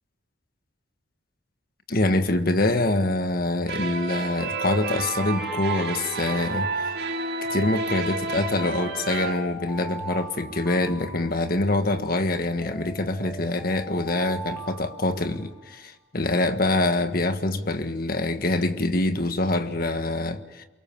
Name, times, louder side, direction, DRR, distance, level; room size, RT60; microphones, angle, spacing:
voice 1, 1.9-6.9 7.5-20.7, left 2 dB, 50° left, 8 dB, 1.6 m, -25 dB
sound 1, 3.7-9.3, right 3 dB, 55° right, 2.2 m, -30 dB
Alarm, 3.8-7.5 8.2-11.9 12.6-15.8, right 1 dB, 5° left, 6.0 m, -40 dB
28.0 x 23.5 x 7.3 m, 1.1 s
head